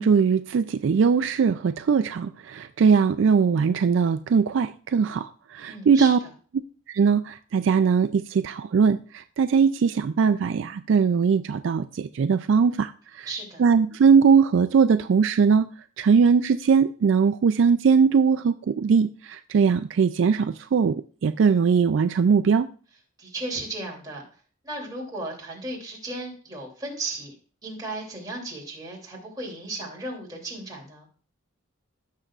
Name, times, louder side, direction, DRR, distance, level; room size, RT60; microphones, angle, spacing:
voice 1, 0.0-5.3 5.5-6.2 6.9-9.0 9.4-12.9 13.6-15.7 16.0-19.1 19.5-21.0 21.2-22.7, right 6 dB, 65° right, 0.3 m, -20 dB
voice 2, 5.7-6.3 13.3-13.6 23.2-24.2 24.6-27.3 27.6-31.1, right 2 dB, 20° right, 2.9 m, -35 dB
16.0 x 6.6 x 2.4 m
head